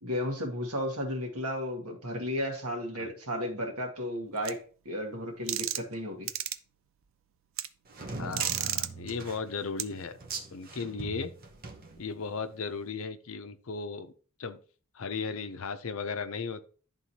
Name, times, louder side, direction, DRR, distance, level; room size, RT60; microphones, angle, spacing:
voice 1, 0.0-4.6 4.8-6.3, equal, 85° right, 2 dB, 1.7 m, -33 dB
sound 1, 4.4-4.5 5.5-5.9 6.3-6.6 7.6-7.7 8.3-8.9 9.8-9.9, right 12 dB, 65° right, 0.4 m, -31 dB
sound 2, 7.9-12.5, right 3 dB, 40° right, 0.9 m, -40 dB
voice 2, 8.2-10.2 10.5-11.3 12.0-14.1 14.4-14.6 14.9-16.7, left 5 dB, 70° left, 10 dB, 0.6 m, -36 dB
11.0 x 3.7 x 2.8 m, 0.40 s
head